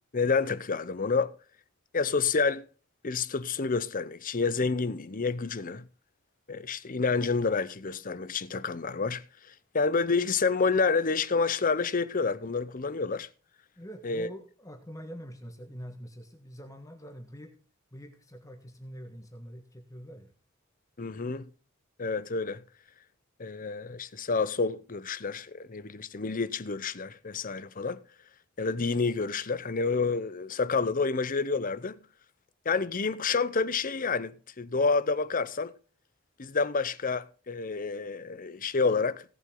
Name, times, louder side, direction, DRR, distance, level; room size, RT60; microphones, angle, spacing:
voice 1, 0.1-1.3 1.9-2.6 3.0-5.9 6.5-9.2 9.7-13.3 14.0-14.3 21.0-21.4 22.0-22.6 23.4-28.0 28.6-32.0 32.6-35.7 36.4-39.2, left 4 dB, 45° left, 0.8 m, -29 dB
voice 2, 13.8-17.5 17.9-20.3, equal, 15° left, 1.5 m, -45 dB
17.5 x 7.9 x 3.8 m
head